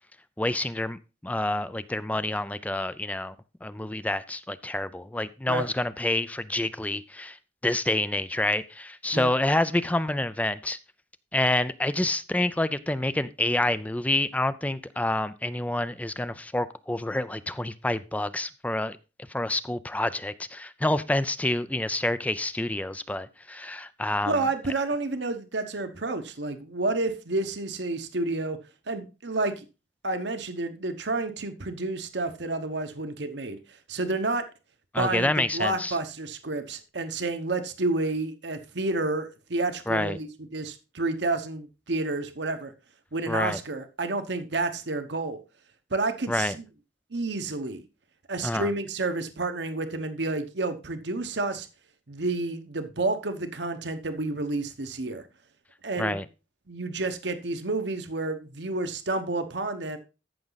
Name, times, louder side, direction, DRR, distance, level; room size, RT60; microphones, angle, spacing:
voice 1, 0.4-3.3 3.6-7.4 7.6-10.8 11.3-19.0 19.3-24.4 34.9-35.9 39.9-40.2 43.3-43.6 46.3-46.5 48.4-48.7 56.0-56.3, left 1 dB, 10° left, 0.4 m, -28 dB
voice 2, 24.3-28.6 28.9-29.6 30.0-33.6 33.9-34.4 35.0-42.7 43.1-45.4 45.9-46.7 47.1-47.8 48.3-51.7 52.1-55.3 55.8-56.2 56.7-60.0, right 2 dB, 65° right, 1.1 m, -30 dB
14.0 x 6.1 x 4.0 m
head